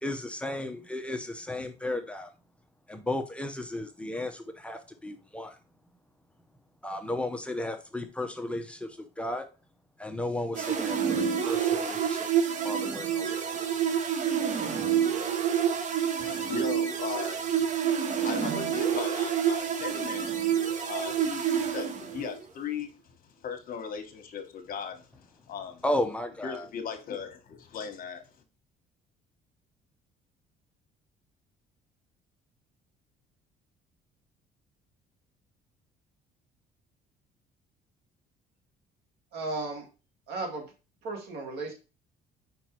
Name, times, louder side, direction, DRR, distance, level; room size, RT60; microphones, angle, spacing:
voice 1, 0.0-2.3 2.9-5.6 6.8-9.5 10.0-12.3 12.6-13.3 13.5-13.7 25.8-26.7, left 1 dB, 5° left, 6 dB, 0.8 m, -34 dB
sound 1, 10.5-22.4, right 8 dB, 45° right, 1.0 m, -28 dB
voice 2, 16.2-17.7 18.2-20.4 20.9-25.8 26.4-28.3, left 7 dB, 55° left, 7 dB, 1.4 m, -38 dB
voice 3, 39.3-39.9 40.3-40.7 41.0-41.7, right 3 dB, 75° right, 3 dB, 2.1 m, -34 dB
5.2 x 4.6 x 4.5 m, 0.31 s
cardioid pair, 110°, 17 cm